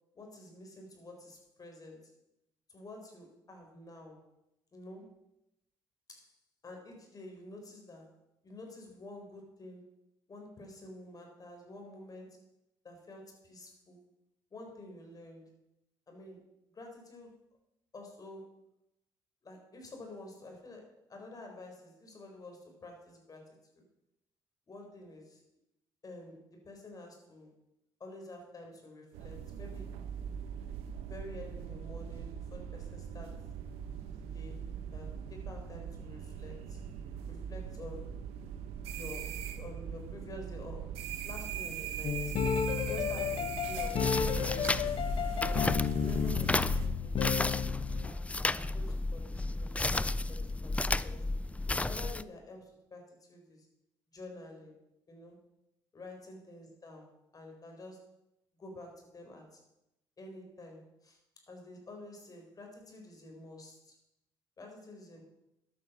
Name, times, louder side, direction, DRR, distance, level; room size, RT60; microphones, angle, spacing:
voice 1, 0.1-2.1 2.7-4.3 4.7-5.2 6.1-6.3 6.6-8.1 8.4-9.9 10.3-12.4 12.8-14.0 14.5-15.5 16.1-17.4 17.9-18.6 19.4-23.8 24.7-25.4 26.0-27.5 28.0-29.9 31.1-33.4 34.1-36.8 37.3-38.2 38.9-41.0 41.2-42.3 42.8-45.0 45.4-47.5 48.0-51.3 51.8-53.7 54.1-54.8 55.1-55.4 55.9-58.0 58.6-59.6 60.2-61.2 61.5-64.0 64.6-65.2, left 2 dB, 40° left, 2 dB, 4.6 m, -49 dB
sound 1, 29.1-46.9, right 8 dB, 85° right, 1.1 m, -41 dB
sound 2, 42.0-48.1, left 7 dB, 65° left, 1.2 m, -32 dB
sound 3, 43.8-52.2, left 2 dB, 15° left, 0.5 m, -33 dB
12.0 x 8.9 x 6.2 m, 0.88 s
supercardioid pair, 70°, 10 cm